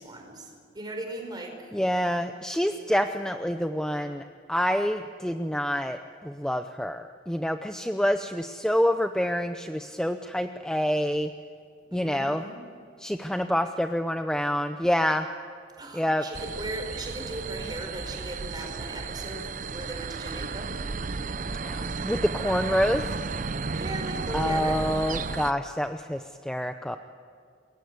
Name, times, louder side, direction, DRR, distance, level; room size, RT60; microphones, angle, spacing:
voice 1, 0.0-1.7 11.9-12.6 15.7-20.8 23.7-24.8, right 1 dB, 25° right, 3 dB, 5.1 m, -38 dB
voice 2, 1.7-4.2 4.5-11.3 11.9-12.4 13.0-15.3 15.9-16.2 21.5-23.0 24.3-27.0, equal, 5° left, 7 dB, 0.7 m, -27 dB
sound 1, 16.3-25.5, right 4 dB, 45° right, 0.6 m, -33 dB
28.0 x 22.0 x 8.1 m, 2.3 s
head